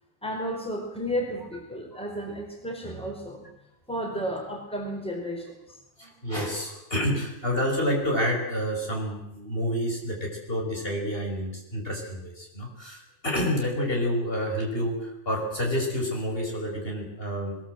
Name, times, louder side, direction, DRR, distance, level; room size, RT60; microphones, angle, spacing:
voice 1, 0.2-3.5 3.9-5.8, equal, 5° left, 1 dB, 4.3 m, -33 dB
voice 2, 6.0-17.6, equal, 40° left, 0 dB, 5.8 m, -29 dB
21.5 x 20.5 x 8.0 m, 0.86 s
omnidirectional pair, 1.4 m